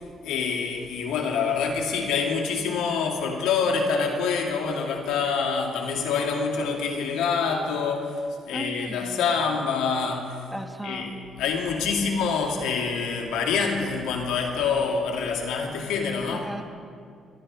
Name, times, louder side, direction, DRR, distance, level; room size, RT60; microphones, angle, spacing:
voice 1, 0.2-10.4 10.8-16.5, left 5 dB, 85° left, 1 dB, 2.2 m, -26 dB
voice 2, 8.5-9.2 10.5-11.5 12.0-12.2 16.3-16.6, right 1 dB, 5° right, 4 dB, 1.5 m, -37 dB
24.0 x 12.5 x 3.3 m, 2.2 s
supercardioid pair, 65°, 0 cm